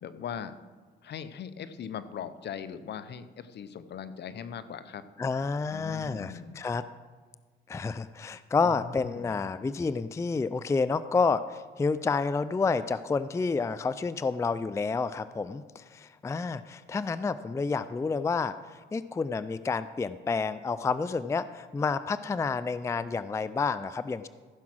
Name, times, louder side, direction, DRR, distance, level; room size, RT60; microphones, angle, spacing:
voice 1, 0.0-0.5 1.0-5.0 5.7-6.6 8.6-9.3, left 7 dB, 60° left, 13 dB, 0.7 m, -40 dB
voice 2, 5.2-6.8 7.7-24.3, left 4 dB, 15° left, 14 dB, 0.3 m, -29 dB
15.0 x 5.9 x 6.1 m, 1.5 s
cardioid pair, 90°, 20 cm